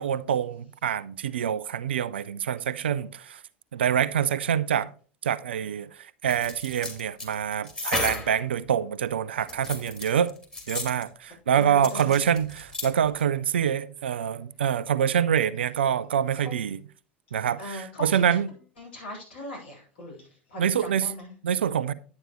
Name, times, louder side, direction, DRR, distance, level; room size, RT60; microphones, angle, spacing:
voice 1, 0.0-3.4 3.7-4.9 5.2-10.3 10.7-16.8 17.3-18.5 20.6-21.1 21.4-21.9, right 8 dB, 70° right, 0.5 m, -26 dB
sound 1, 6.3-8.4 9.4-11.0 11.8-12.9 13.2-13.3, left 3 dB, 15° left, 2.8 m, -33 dB
voice 2, 11.6-12.2 16.4-16.5 17.6-18.2 18.8-21.3, equal, 65° left, 5.7 m, -39 dB
10.5 x 8.8 x 3.0 m
figure-of-eight pair, 80°, 6 cm